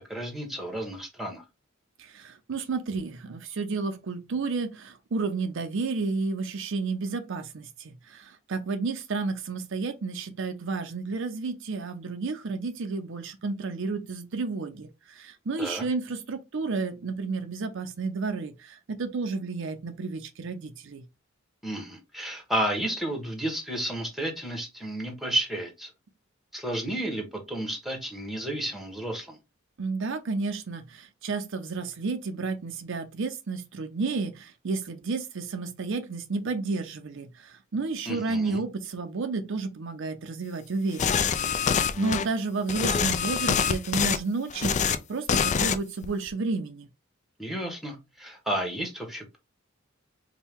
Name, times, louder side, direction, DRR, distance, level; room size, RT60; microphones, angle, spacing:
voice 1, 0.1-1.4 15.6-15.8 21.6-25.9 26.5-29.4 38.1-38.6 47.4-49.4, right 1 dB, ahead, 1.0 m, -32 dB
voice 2, 2.0-21.0 29.8-41.3 41.5-46.9, right 4 dB, 65° right, 0.5 m, -31 dB
sound 1, 41.0-42.2 42.7-44.2 44.5-45.0 45.3-45.8 46.0-46.3, left 7 dB, 35° left, 0.3 m, -25 dB
4.4 x 2.2 x 3.5 m
head